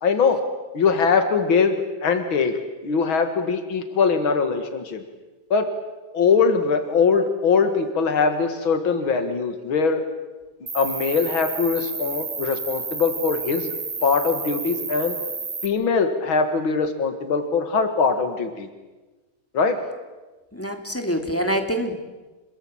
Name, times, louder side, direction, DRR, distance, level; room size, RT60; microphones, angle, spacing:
voice 1, 0.0-0.4 0.7-2.6 2.8-5.0 5.5-5.7 6.1-10.0 10.7-13.7 14.0-15.2 15.6-18.7 19.5-19.8, left 5 dB, 90° left, 8 dB, 2.7 m, -21 dB
Cricket, 10.7-15.7, right 4 dB, 45° right, 3.1 m, -31 dB
voice 2, 20.5-21.9, equal, 5° left, 5 dB, 2.5 m, -25 dB
26.5 x 21.5 x 8.8 m, 1.2 s
omnidirectional pair, 2.1 m